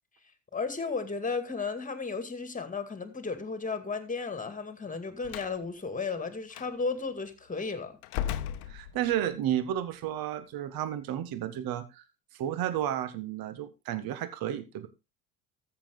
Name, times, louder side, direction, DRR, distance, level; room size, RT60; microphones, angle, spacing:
voice 1, 0.5-8.0, left 4 dB, 15° left, 2.2 m, -34 dB
Slam, 5.2-5.6 6.5-6.7 8.0-9.3, left 11 dB, 55° left, 0.9 m, -35 dB
voice 2, 8.7-12.0 12.4-14.9, right 11 dB, 50° right, 1.5 m, -32 dB
14.0 x 7.4 x 3.7 m
hypercardioid pair, 70°, 45 cm